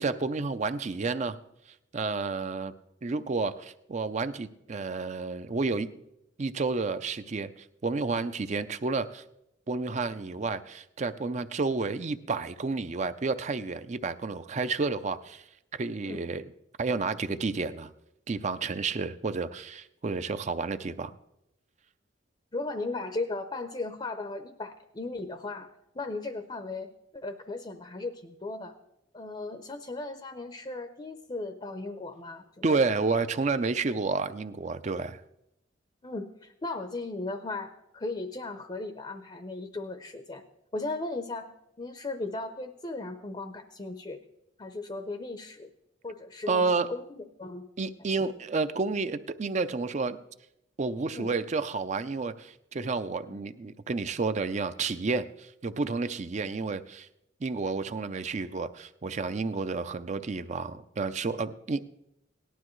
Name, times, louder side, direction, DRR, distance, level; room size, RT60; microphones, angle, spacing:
voice 1, 0.0-1.4 1.9-2.7 3.0-5.9 6.4-9.2 9.7-15.5 15.8-16.5 16.8-17.9 18.3-21.1 32.6-35.2 46.5-46.9 47.8-50.2 50.8-57.1 57.4-61.8, right 4 dB, 40° right, 11 dB, 0.5 m, -30 dB
voice 2, 22.5-25.7 25.9-28.7 29.1-32.8 36.0-40.4 40.7-41.5 41.8-44.2 44.6-45.7 46.0-47.7 48.2-48.3 51.1-51.3 53.3-53.4, left 2 dB, 25° left, 8 dB, 0.6 m, -37 dB
18.0 x 12.0 x 3.1 m, 0.83 s
head